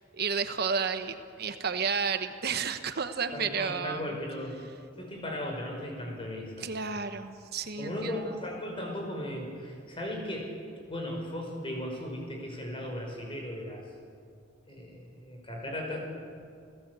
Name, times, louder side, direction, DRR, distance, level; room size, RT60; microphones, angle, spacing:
voice 1, 0.0-4.1 6.6-8.1, right 5 dB, 55° right, 8 dB, 1.1 m, -31 dB
voice 2, 3.3-4.6 5.0-6.8 7.8-10.5 10.9-13.8 14.7-16.0, left 1 dB, 30° left, 1 dB, 5.4 m, -36 dB
30.0 x 16.5 x 8.2 m, 2.3 s
head